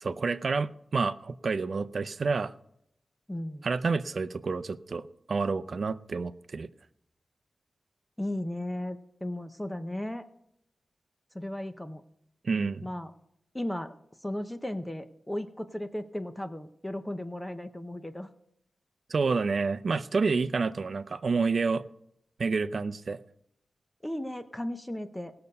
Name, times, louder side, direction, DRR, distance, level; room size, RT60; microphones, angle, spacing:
voice 1, 0.0-2.5 3.6-6.7 12.4-12.9 19.1-21.8 22.4-23.2, right 4 dB, 50° right, 13 dB, 0.5 m, -29 dB
voice 2, 3.3-3.7 8.2-10.2 11.3-12.0 12.8-13.1 13.5-13.9 14.2-18.3 24.0-25.3, left 1 dB, 10° left, 9 dB, 0.6 m, -35 dB
19.0 x 6.8 x 5.3 m, 0.75 s
wide cardioid pair, 150°, 0 cm